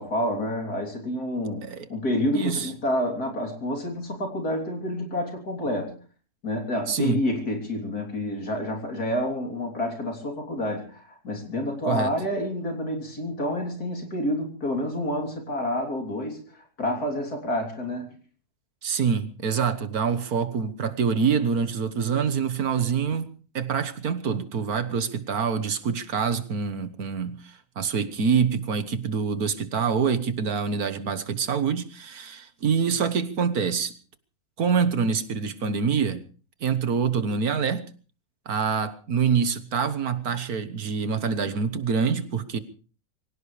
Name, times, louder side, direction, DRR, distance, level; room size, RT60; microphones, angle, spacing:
voice 1, 0.0-6.0 6.4-18.2, left 1 dB, 75° left, 2 dB, 3.9 m, -29 dB
voice 2, 2.3-2.7 6.9-7.2 11.9-12.1 18.8-33.9 34.6-36.2 36.6-37.9 38.5-42.6, right 6 dB, 70° right, 11 dB, 1.8 m, -26 dB
24.5 x 17.0 x 3.3 m, 0.39 s
omnidirectional pair, 1.6 m